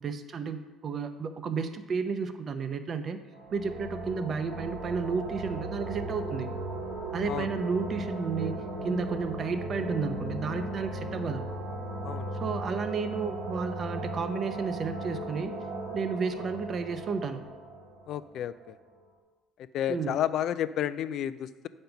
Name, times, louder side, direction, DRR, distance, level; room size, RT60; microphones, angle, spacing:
voice 1, 0.0-3.2 3.5-6.5 7.1-11.4 12.3-15.5 15.9-17.4 19.9-20.2, right 5 dB, 45° right, 9 dB, 0.7 m, -32 dB
sound 1, 3.3-18.9, right 1 dB, 85° right, 2.1 m, -37 dB
voice 2, 18.1-18.8 19.7-21.7, left 10 dB, 65° left, 14 dB, 0.4 m, -31 dB
7.6 x 5.4 x 5.8 m, 1.2 s
supercardioid pair, 85°, 0 cm